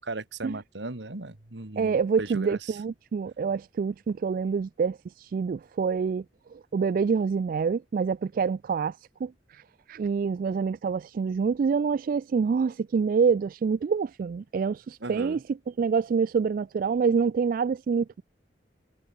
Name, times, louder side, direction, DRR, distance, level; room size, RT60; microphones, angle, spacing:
voice 1, 0.0-2.8 15.0-15.4, right 2 dB, 90° right, 1.9 m, -37 dB
voice 2, 1.8-6.2 6.5-9.6 9.9-15.4 15.8-18.2, right 5 dB, 50° right, 0.3 m, -26 dB
head